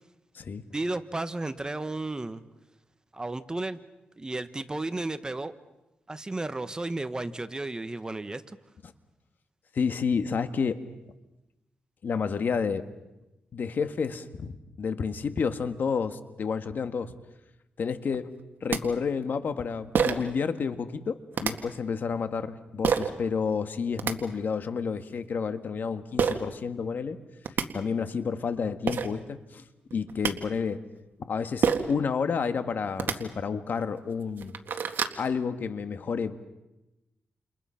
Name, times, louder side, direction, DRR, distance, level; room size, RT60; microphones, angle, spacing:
voice 1, 0.7-2.4 3.1-3.8 4.2-5.5 6.1-8.4, right 2 dB, 20° right, 11 dB, 1.2 m, -33 dB
voice 2, 9.7-10.8 12.0-12.9 13.5-17.1 17.8-18.3 18.6-27.2 27.7-29.6 29.9-30.8 31.3-34.5 35.2-36.4, left 5 dB, 60° left, 9 dB, 1.6 m, -30 dB
sound 1, 18.4-18.5 18.7-18.8 19.9-20.3 21.3-21.5 22.8-23.1 23.8-24.1 26.2-26.4 27.1-27.2 27.4-27.7 28.5-28.6 28.9-29.1 29.9-30.3 31.6-31.9 32.9-33.2 33.8-33.9 34.3-35.2, right 6 dB, 70° right, 1.9 m, -26 dB
29.5 x 29.0 x 5.8 m, 0.97 s
cardioid pair, 90°, 4 cm